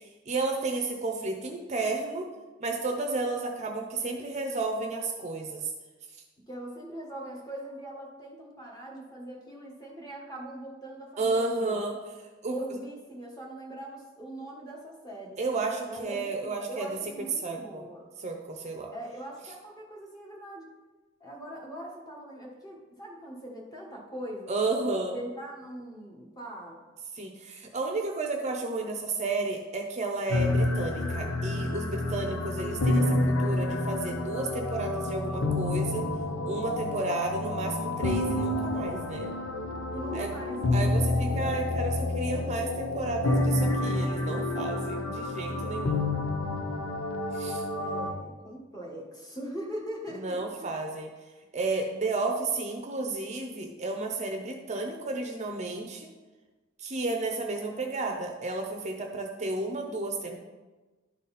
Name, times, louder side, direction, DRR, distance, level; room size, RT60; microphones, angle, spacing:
voice 1, 0.0-2.3 2.6-5.6 11.2-11.9 12.4-12.6 15.4-16.9 17.4-17.9 18.2-18.9 24.5-25.2 27.2-36.0 36.5-39.3 40.1-40.3 40.7-46.0 47.3-47.6 50.2-51.1 51.5-56.1 56.8-60.4, right 3 dB, 35° right, 3 dB, 0.6 m, -32 dB
voice 2, 6.5-11.8 12.5-15.4 15.9-18.1 18.9-20.7 21.2-24.6 25.1-26.8 39.9-41.8 47.8-50.7, right 1 dB, 20° left, -1 dB, 1.4 m, -41 dB
sound 1, 30.3-48.1, left 2 dB, 80° left, 0.9 m, -29 dB
11.5 x 4.0 x 4.1 m, 1.2 s
head